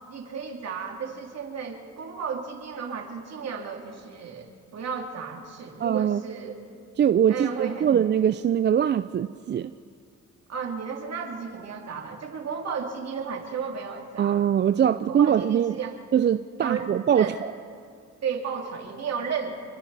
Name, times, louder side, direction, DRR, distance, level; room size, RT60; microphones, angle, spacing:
voice 1, 0.1-6.6 7.2-7.9 10.5-14.5 15.1-16.0 16.6-17.4 18.2-19.6, right 6 dB, 60° right, 1 dB, 3.0 m, -33 dB
voice 2, 5.8-6.2 7.0-9.7 14.2-15.7 16.1-17.5, right 9 dB, 35° right, 12 dB, 0.4 m, -22 dB
27.5 x 22.5 x 4.2 m, 2.3 s
cardioid pair, 90°, 30 cm